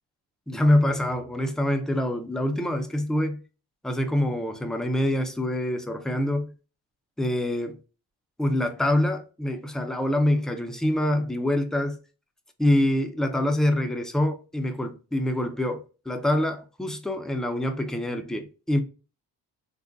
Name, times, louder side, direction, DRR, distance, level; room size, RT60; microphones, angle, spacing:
voice 1, 0.5-3.4 3.8-6.5 7.2-7.8 8.4-12.0 12.6-18.8, left 1 dB, ahead, 0.4 m, -25 dB
3.7 x 2.1 x 2.5 m
cardioid pair, 95°, 41 cm